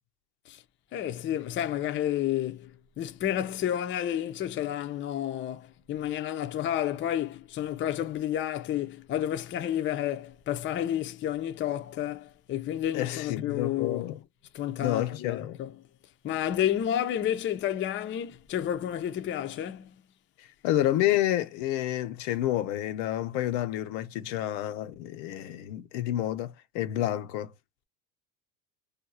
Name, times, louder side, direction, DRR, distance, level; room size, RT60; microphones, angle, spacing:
voice 1, 0.9-14.1 14.5-15.7 16.2-19.9, left 11 dB, 25° left, 0.4 m, -30 dB
voice 2, 12.9-14.2 14.8-15.6 20.4-27.5, left 13 dB, 90° left, 0.7 m, -29 dB
2.6 x 2.3 x 4.0 m
supercardioid pair, 110°, 50 cm